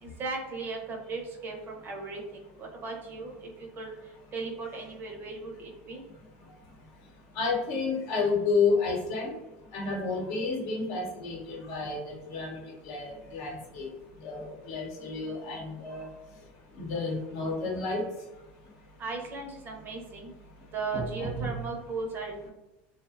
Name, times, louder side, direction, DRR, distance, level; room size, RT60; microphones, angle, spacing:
voice 1, 0.0-3.5 3.8-4.0 4.3-6.0 19.0-20.3 20.7-22.5, right 3 dB, 40° right, 1 dB, 0.5 m, -37 dB
voice 2, 7.4-9.3 9.7-12.6 12.8-13.9 14.2-16.1 16.8-18.0 20.9-21.6, left 4 dB, 65° left, -1 dB, 0.8 m, -30 dB
2.5 x 2.1 x 2.3 m, 1.0 s
supercardioid pair, 120°, 6 cm